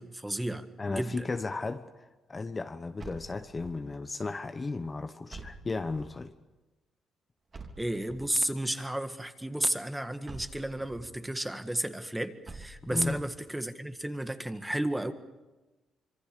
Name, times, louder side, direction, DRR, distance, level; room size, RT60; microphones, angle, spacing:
voice 1, 0.0-1.3 7.8-15.1, right 1 dB, 10° right, 1.7 m, -33 dB
voice 2, 0.8-6.3 12.9-13.2, left 3 dB, 25° left, 1.1 m, -35 dB
sound 1, 3.0-4.0 5.3-6.3 7.5-8.5 10.3-11.1 12.5-13.3, right 3 dB, 35° right, 3.0 m, -47 dB
26.0 x 24.5 x 6.8 m
cardioid pair, 90°, 0 cm